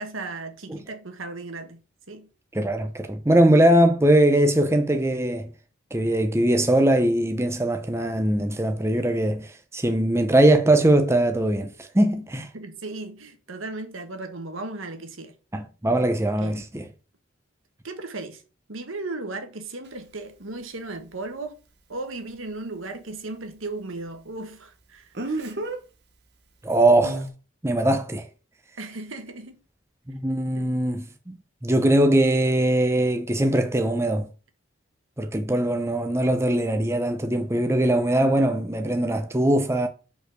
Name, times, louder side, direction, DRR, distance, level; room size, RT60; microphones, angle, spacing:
voice 1, 0.0-1.8 2.1-2.3 12.5-15.3 16.4-16.6 17.8-18.4 18.7-21.6 21.9-25.7 28.8-29.6 30.5-30.8, right 2 dB, 90° right, 1.4 m, -36 dB
voice 2, 2.5-5.5 5.9-12.5 15.5-16.8 26.6-27.3 27.6-28.2 30.1-31.4 31.6-34.3 35.2-39.9, right 1 dB, 15° right, 0.6 m, -21 dB
Speech, 19.8-19.9 25.1-25.8 27.0-27.3, right 2 dB, 55° right, 1.0 m, -30 dB
5.5 x 4.2 x 6.2 m
head